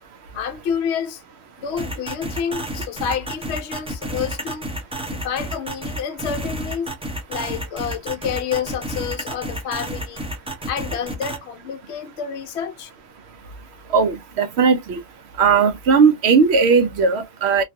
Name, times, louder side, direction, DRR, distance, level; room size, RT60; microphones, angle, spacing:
voice 1, 0.3-1.2 1.6-4.7 5.1-6.9 7.3-10.3 10.7-12.9, left 7 dB, 60° left, 0.8 m, -28 dB
sound 1, 1.8-11.4, right 1 dB, 10° right, 0.4 m, -30 dB
voice 2, 13.9-15.0 15.4-17.6, right 5 dB, 65° right, 0.7 m, -17 dB
3.1 x 2.3 x 2.5 m
omnidirectional pair, 1.4 m